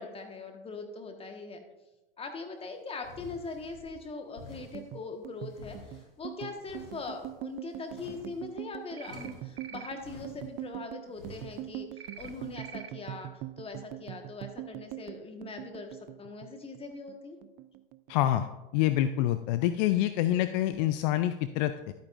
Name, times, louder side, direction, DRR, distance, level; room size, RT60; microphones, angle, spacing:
voice 1, 0.0-1.6 2.2-5.8 6.2-13.3 13.6-17.4, left 4 dB, 20° left, 4 dB, 1.4 m, -41 dB
sound 1, 3.0-3.9 4.3-4.9 5.4-6.1 6.6-7.4 7.8-8.5 9.0-9.5 10.0-10.6 11.1-11.6 12.1-12.6, left 2 dB, 75° left, 3.6 m, -50 dB
sound 2, 4.6-17.2 17.4-18.5 18.8-19.1 19.4-20.1, right 16 dB, 30° right, 0.4 m, -43 dB
sound 3, 9.0-9.3 9.6-9.9 12.0-12.3 12.6-12.9, right 7 dB, 85° right, 0.7 m, -45 dB
voice 2, 18.1-18.5 18.7-21.9, left 13 dB, 50° left, 11 dB, 0.5 m, -26 dB
12.0 x 9.0 x 2.5 m, 1.1 s
hypercardioid pair, 95°, 29 cm